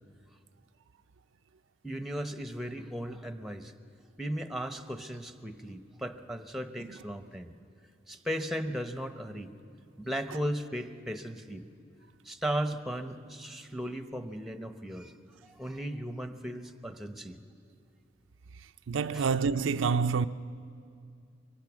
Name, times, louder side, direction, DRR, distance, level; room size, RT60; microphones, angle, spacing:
voice 1, 1.8-3.7 4.2-7.5 8.1-9.5 10.0-11.6 12.2-15.1 15.4-17.4 19.1-19.3, equal, ahead, 0.9 m, -36 dB
voice 2, 18.9-20.3, right 5 dB, 85° right, 0.5 m, -27 dB
23.5 x 23.5 x 6.2 m
head